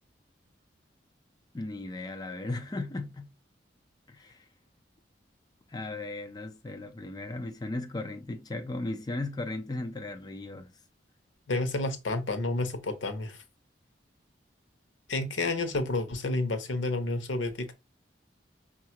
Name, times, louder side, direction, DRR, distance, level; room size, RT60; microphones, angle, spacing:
voice 1, 1.5-3.3 4.1-4.4 5.7-10.7, left 2 dB, 20° left, 0.4 m, -36 dB
voice 2, 11.5-13.4 15.1-17.7, left 2 dB, 90° left, 0.7 m, -30 dB
5.5 x 2.3 x 2.9 m
head